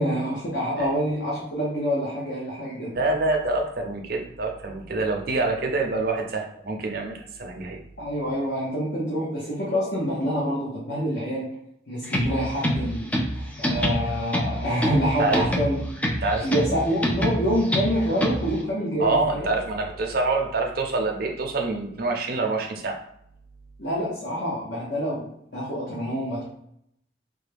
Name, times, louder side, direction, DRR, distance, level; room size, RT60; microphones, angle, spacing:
voice 1, 0.0-3.0 8.0-11.5 11.9-15.8 16.4-19.5 23.8-25.3 25.5-26.4, equal, 60° left, -5 dB, 0.9 m, -26 dB
voice 2, 2.9-7.8 15.2-15.4 16.2-16.8 19.0-23.0, right 3 dB, 50° right, 2 dB, 0.6 m, -26 dB
sound 1, 12.0-18.6, equal, 5° left, 0.3 m, -27 dB
3.4 x 2.2 x 3.4 m, 0.73 s
head